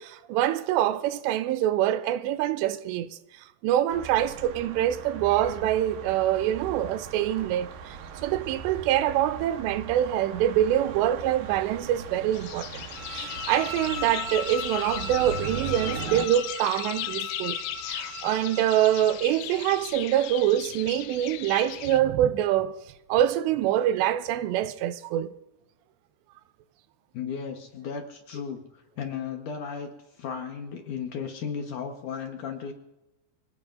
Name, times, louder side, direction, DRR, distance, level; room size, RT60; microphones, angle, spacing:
voice 1, 0.0-3.2 3.6-8.0 8.2-17.6 17.8-22.8 23.1-25.3, right 12 dB, 85° right, 2.9 m, -25 dB
sound 1, 3.9-16.3, right 6 dB, 65° right, 2.3 m, -39 dB
sound 2, 12.3-22.0, left 14 dB, 85° left, 2.1 m, -37 dB
sound 3, 12.9-19.1, left 2 dB, 35° right, 5.1 m, -38 dB
voice 2, 27.1-29.9 30.2-32.7, left 6 dB, 70° left, 2.1 m, -35 dB
25.0 x 18.5 x 2.5 m
omnidirectional pair, 4.9 m